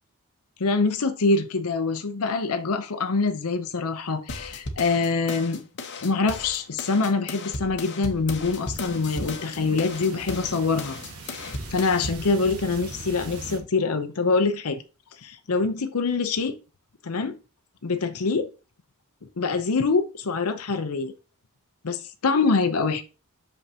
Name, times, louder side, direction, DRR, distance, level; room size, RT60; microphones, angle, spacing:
voice 1, 0.6-5.6 6.0-11.0 11.3-14.8 15.2-16.5 17.0-17.3 17.8-18.5 19.4-21.1 21.9-22.0 22.2-23.0, left 4 dB, 75° left, 0.7 m, -25 dB
sound 1, 4.3-12.3, left 2 dB, 55° left, 1.0 m, -36 dB
sound 2, 8.4-13.6, right 3 dB, 75° right, 1.5 m, -41 dB
6.4 x 5.4 x 2.9 m
head